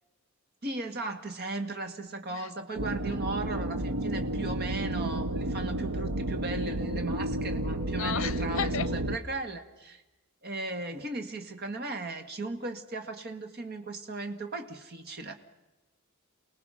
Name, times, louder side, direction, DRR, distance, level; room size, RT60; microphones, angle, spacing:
voice 1, 0.6-10.0 10.4-15.3, right 2 dB, 50° right, 1.9 m, -37 dB
sound 1, 2.8-9.2, right 1 dB, 90° right, 1.0 m, -31 dB
voice 2, 7.9-8.9, left 8 dB, 65° left, 0.7 m, -34 dB
29.0 x 19.0 x 5.7 m
head